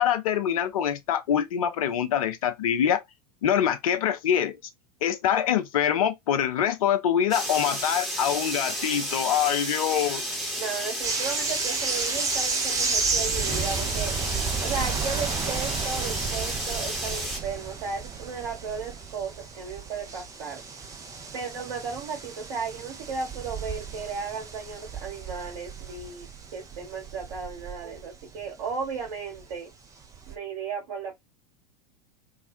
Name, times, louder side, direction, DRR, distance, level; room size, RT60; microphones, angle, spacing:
voice 1, 0.0-3.0 3.4-4.6 5.0-10.3, left 9 dB, 60° left, 0.5 m, -24 dB
sound 1, 7.3-17.4, equal, ahead, 1.0 m, -32 dB
voice 2, 10.5-14.1 14.6-20.6 21.3-29.7 30.3-31.1, right 5 dB, 55° right, 0.9 m, -35 dB
sound 2, 11.0-29.6 29.9-30.4, right 5 dB, 15° right, 0.5 m, -33 dB
2.4 x 2.1 x 2.5 m
figure-of-eight pair, 85°, 21 cm